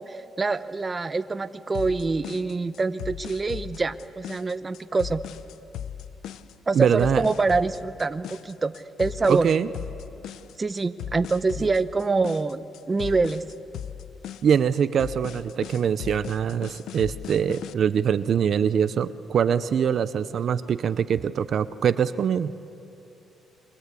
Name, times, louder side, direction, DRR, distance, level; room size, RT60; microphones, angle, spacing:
voice 1, 0.0-5.2 6.7-8.7 9.0-9.5 10.6-13.4, right 3 dB, 25° right, 12 dB, 0.9 m, -25 dB
sound 1, 1.7-17.7, left 10 dB, 80° left, 0.8 m, -38 dB
voice 2, 6.7-7.2 9.3-9.7 14.4-22.5, right 8 dB, 60° right, 14 dB, 0.7 m, -23 dB
29.0 x 23.5 x 8.4 m, 2.8 s
cardioid pair, 90°, 0 cm